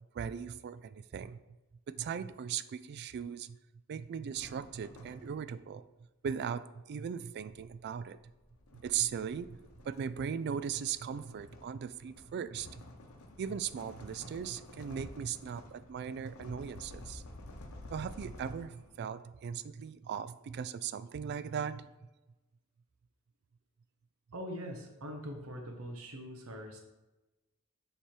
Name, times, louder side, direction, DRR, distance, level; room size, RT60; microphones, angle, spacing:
voice 1, 0.1-1.4 1.9-3.6 3.9-5.8 6.2-8.2 8.8-9.6 9.9-12.8 13.4-17.2 17.9-21.9, right 7 dB, 50° right, 14 dB, 0.3 m, -38 dB
sound 1, 4.3-5.7 6.9-19.1, left 1 dB, 80° left, 0.8 m, -52 dB
voice 2, 24.3-26.8, equal, 75° right, 2 dB, 0.9 m, -42 dB
7.2 x 3.3 x 4.5 m, 1.0 s
head